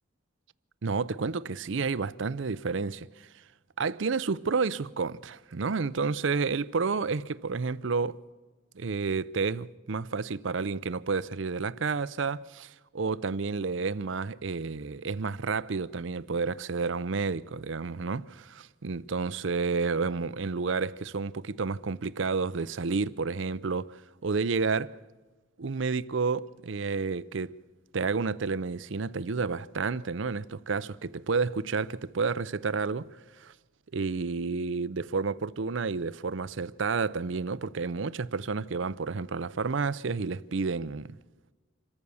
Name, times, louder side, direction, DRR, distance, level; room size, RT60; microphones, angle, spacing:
voice 1, 0.8-3.3 3.8-8.2 8.8-24.9 25.6-27.5 27.9-33.5 33.9-41.2, right 4 dB, 65° right, 0.6 m, -30 dB
26.5 x 14.5 x 7.0 m
head